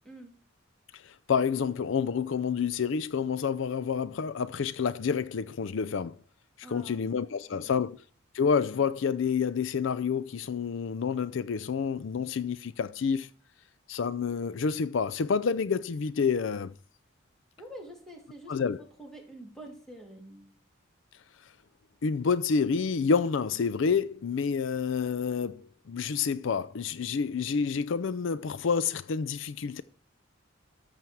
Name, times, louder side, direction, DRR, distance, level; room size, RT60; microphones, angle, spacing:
voice 1, 0.9-6.2 6.6-8.0 8.3-13.3 13.9-16.7 18.5-18.8 21.4-21.5 22.0-29.8, left 6 dB, 60° left, 0.4 m, -29 dB
voice 2, 6.6-7.0 7.5-7.7 17.6-18.5 19.0-20.5, right 1 dB, ahead, 2.9 m, -47 dB
13.5 x 7.3 x 4.7 m
head